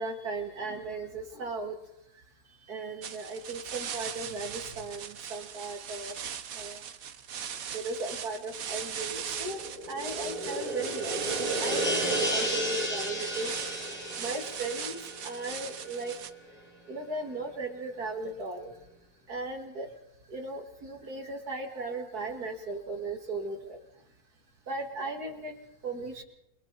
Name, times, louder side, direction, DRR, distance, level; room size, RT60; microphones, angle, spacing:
voice 1, 0.0-1.8 2.1-6.2 6.5-6.8 7.7-13.5 13.9-16.3 16.9-18.8 19.3-19.9 20.3-24.0 24.7-26.2, right 3 dB, 80° right, 3 dB, 3.2 m, -37 dB
sound 1, 3.0-16.3, right 8 dB, 65° right, 1.4 m, -38 dB
sound 2, 9.3-16.3 16.6-16.7, equal, 35° left, 5.2 m, -33 dB
29.5 x 23.5 x 4.3 m, 0.80 s
omnidirectional pair, 1.6 m